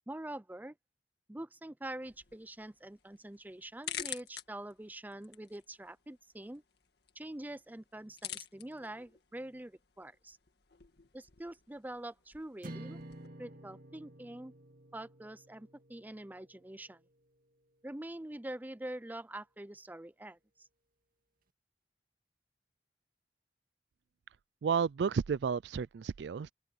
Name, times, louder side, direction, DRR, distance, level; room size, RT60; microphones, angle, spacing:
voice 1, 0.1-0.7 1.3-6.6 7.2-10.4 11.1-13.0 13.4-14.5 14.9-17.0 17.8-20.7, right 1 dB, 10° right, 0.5 m, -45 dB
sound 1, 2.0-13.3, left 10 dB, 65° left, 1.9 m, -49 dB
sound 2, 12.6-17.0, right 1 dB, 55° right, 2.0 m, -50 dB
voice 2, 24.6-26.5, right 6 dB, 70° right, 0.4 m, -32 dB
open air
head